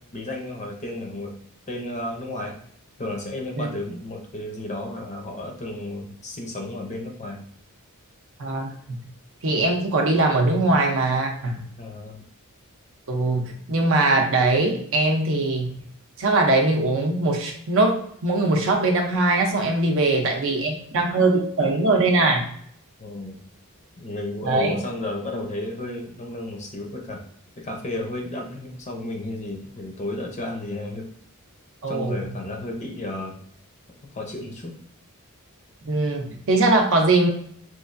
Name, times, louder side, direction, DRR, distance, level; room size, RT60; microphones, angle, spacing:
voice 1, 0.0-1.3 1.7-2.5 3.0-7.4 11.8-12.2 23.0-23.4 24.0-27.2 27.6-31.0 31.9-33.4 34.1-34.7, left 2 dB, 30° left, 1 dB, 0.5 m, -32 dB
voice 2, 8.4-9.0 9.4-11.6 13.1-15.7 16.2-22.4 24.4-24.8 31.8-32.2 35.8-37.3, right 2 dB, 60° right, 2 dB, 0.6 m, -21 dB
3.0 x 2.4 x 2.5 m, 0.64 s
head